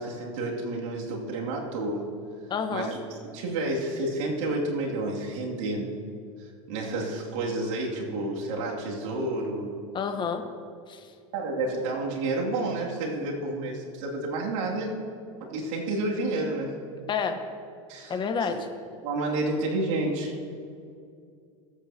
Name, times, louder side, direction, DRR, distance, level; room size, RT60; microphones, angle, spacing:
voice 1, 0.0-2.0 2.7-3.0 3.3-5.9 6.4-9.9 11.3-15.0 15.5-16.8 17.9-18.6 19.0-20.4, right 2 dB, 65° right, -2 dB, 2.6 m, -30 dB
voice 2, 2.5-3.0 9.9-10.4 10.9-11.1 17.1-17.4 18.1-18.6, left 6 dB, 25° left, 6 dB, 1.2 m, -29 dB
20.5 x 8.6 x 2.9 m, 2.4 s
hypercardioid pair, 110°, 18 cm